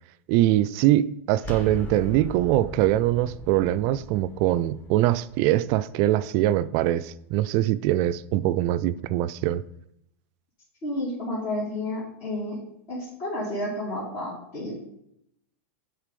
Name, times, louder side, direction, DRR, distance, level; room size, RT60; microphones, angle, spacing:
voice 1, 0.3-9.6, right 14 dB, 50° right, 0.3 m, -23 dB
sound 1, 1.4-7.1, left 1 dB, 25° left, 1.2 m, -40 dB
voice 2, 10.8-12.6 12.9-14.7, left 1 dB, 50° left, 2.7 m, -31 dB
7.3 x 4.5 x 5.3 m
hypercardioid pair, 105°, 7 cm